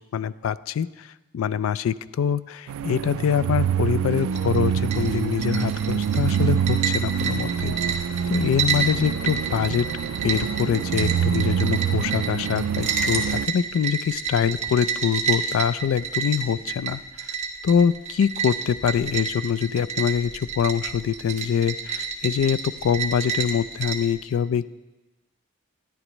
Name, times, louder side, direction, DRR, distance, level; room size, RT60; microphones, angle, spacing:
voice 1, 0.1-7.8 8.3-9.9 10.2-17.3 17.6-24.7, left 7 dB, 80° left, 17 dB, 0.3 m, -24 dB
sound 1, 2.7-13.5, right 8 dB, 85° right, 0.3 m, -26 dB
sound 2, 4.2-24.1, right 6 dB, 35° right, 0.9 m, -30 dB
13.0 x 10.0 x 3.0 m, 1.1 s
head